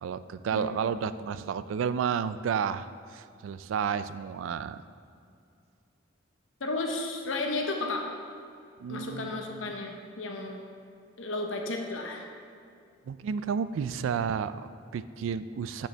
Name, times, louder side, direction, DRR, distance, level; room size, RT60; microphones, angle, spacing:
voice 1, 0.0-4.8 8.8-9.7 13.1-15.9, right 7 dB, 90° right, 14 dB, 0.3 m, -32 dB
voice 2, 0.5-0.9 6.6-8.1 8.9-10.6 11.2-12.3, left 2 dB, 90° left, 2 dB, 0.9 m, -33 dB
8.2 x 6.1 x 3.4 m, 2.5 s
head